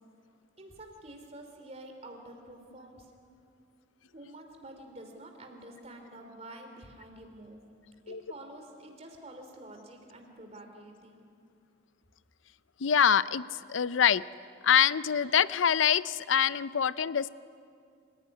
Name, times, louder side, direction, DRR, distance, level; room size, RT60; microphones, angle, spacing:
voice 1, 0.6-3.1 4.1-7.6 8.1-11.2, right 1 dB, 35° right, 4 dB, 3.1 m, -48 dB
voice 2, 12.8-13.4 13.7-14.2 14.6-17.3, left 8 dB, 85° left, 17 dB, 0.5 m, -25 dB
27.0 x 16.0 x 9.6 m, 2.4 s
head